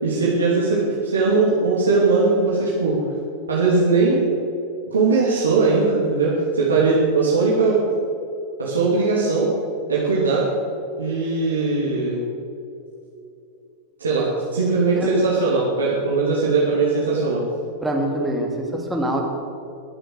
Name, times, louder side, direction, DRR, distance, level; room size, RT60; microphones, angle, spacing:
voice 1, 0.0-3.0 3.5-4.3 4.9-7.8 8.6-9.5 9.9-10.4 11.0-12.2 14.0-17.4, right 4 dB, 70° right, -6 dB, 2.9 m, -19 dB
voice 2, 17.8-19.2, right 1 dB, 5° right, -1 dB, 2.8 m, -24 dB
22.5 x 7.9 x 6.6 m, 2.7 s
figure-of-eight pair, 90°, 0 cm